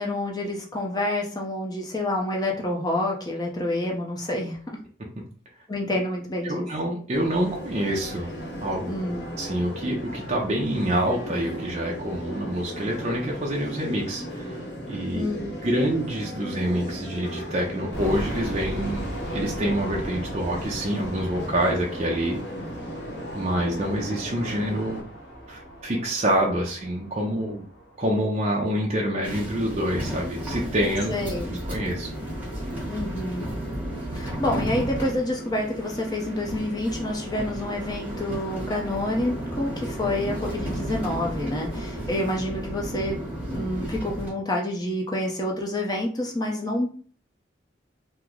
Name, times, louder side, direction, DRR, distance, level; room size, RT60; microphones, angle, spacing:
voice 1, 0.0-4.6 5.7-6.7 8.9-9.3 15.1-15.5 31.1-31.6 32.9-33.5 34.1-43.2 43.5-46.9, left 1 dB, 20° left, 0 dB, 0.5 m, -28 dB
voice 2, 6.4-8.3 8.6-8.9 9.4-14.6 14.9-15.3 15.6-22.4 23.3-25.0 25.5-27.7 28.0-31.2 31.5-32.1, right 1 dB, 35° right, -1 dB, 0.5 m, -26 dB
sound 1, 7.1-25.0, equal, 65° left, 1.0 m, -36 dB
sound 2, 17.9-28.8, equal, 85° left, 1.1 m, -38 dB
sound 3, 29.2-44.3, right 1 dB, 10° right, 1.2 m, -33 dB
3.1 x 2.0 x 3.6 m, 0.44 s
head